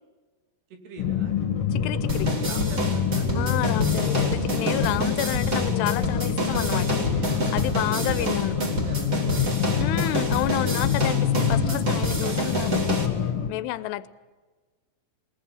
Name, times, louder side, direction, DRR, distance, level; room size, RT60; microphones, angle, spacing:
voice 1, 0.7-1.4 2.2-3.3 7.6-9.9 13.7-14.0, right 3 dB, 75° right, 4 dB, 4.9 m, -44 dB
sound 1, 1.0-13.5, left 8 dB, 50° left, 2.0 m, -26 dB
voice 2, 1.7-2.3 3.4-8.6 9.8-13.0 13.5-14.1, left 15 dB, 90° left, 16 dB, 3.0 m, -30 dB
sound 2, 2.1-13.1, right 2 dB, 25° right, 2.4 m, -29 dB
21.0 x 20.0 x 9.8 m, 1.3 s
omnidirectional pair, 4.7 m